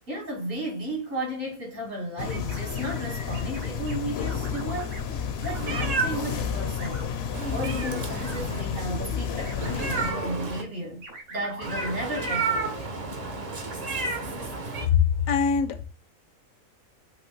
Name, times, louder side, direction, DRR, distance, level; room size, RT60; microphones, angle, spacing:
voice 1, 0.1-7.1 7.5-12.9, right 1 dB, 70° right, 2.6 m, -34 dB
sound 1, 2.2-10.1, left 7 dB, 60° left, 0.7 m, -31 dB
sound 2, 2.3-2.8 3.3-4.0 4.3-5.0 5.4-5.6 5.9-7.1 7.4-8.4 8.7-9.2 9.4-9.5 10.0-10.5 11.0-11.7, right 3 dB, 85° right, 1.7 m, -42 dB
Meow, 5.5-6.3 7.3-8.6 9.6-10.6 11.6-14.9, right 3 dB, 40° right, 0.7 m, -31 dB
voice 2, 14.8-15.8, left 7 dB, 75° left, 1.0 m, -22 dB
6.1 x 2.6 x 3.2 m
omnidirectional pair, 1.4 m